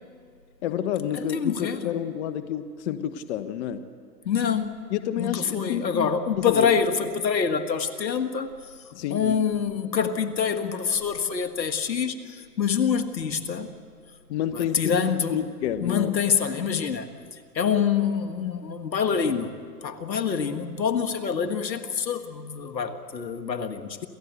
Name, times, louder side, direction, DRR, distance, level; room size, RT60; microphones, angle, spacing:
voice 1, 0.6-3.9 4.9-6.1 6.4-6.7 8.9-9.3 14.3-15.0 15.3-16.1, left 10 dB, 45° left, 11 dB, 1.2 m, -29 dB
voice 2, 1.1-2.0 4.3-4.8 5.1-8.7 9.1-13.7 14.5-15.4 15.8-19.6 19.8-24.1, left 6 dB, 85° left, 8 dB, 1.9 m, -26 dB
27.5 x 16.0 x 8.3 m, 2.1 s
hypercardioid pair, 130°, 50 cm